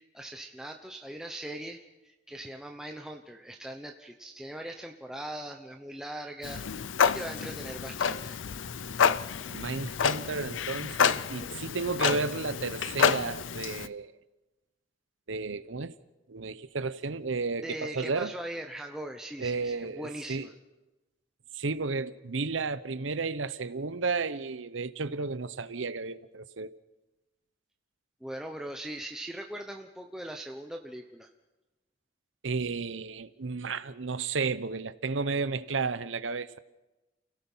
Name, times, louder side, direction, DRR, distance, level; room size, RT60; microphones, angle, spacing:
voice 1, 0.0-6.6 7.0-8.4 17.6-20.5 28.2-31.3, right 1 dB, 5° right, 0.9 m, -40 dB
Clock, 6.4-13.9, left 6 dB, 90° left, 0.6 m, -29 dB
voice 2, 9.5-14.1 15.3-15.9 16.3-18.3 19.4-20.5 21.5-26.7 32.4-36.6, right 4 dB, 90° right, 0.8 m, -33 dB
29.5 x 17.0 x 5.6 m
head